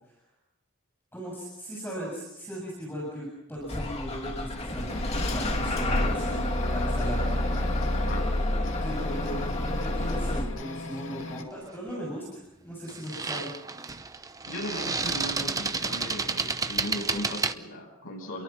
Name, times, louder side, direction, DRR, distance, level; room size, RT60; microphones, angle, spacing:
voice 1, 1.1-6.4 6.7-7.2 8.8-9.4 9.6-13.5, equal, 10° left, -3 dB, 7.3 m, -38 dB
Bus / Engine starting, 3.7-10.4, left 1 dB, 30° left, 2.6 m, -28 dB
sound 1, 4.9-11.4, left 3 dB, 65° left, 2.3 m, -41 dB
sound 2, 11.2-11.4 12.9-17.5, right 4 dB, 15° right, 0.8 m, -31 dB
voice 2, 14.5-18.4, left 1 dB, 85° left, -1 dB, 7.7 m, -37 dB
30.0 x 23.0 x 5.8 m, 0.88 s
head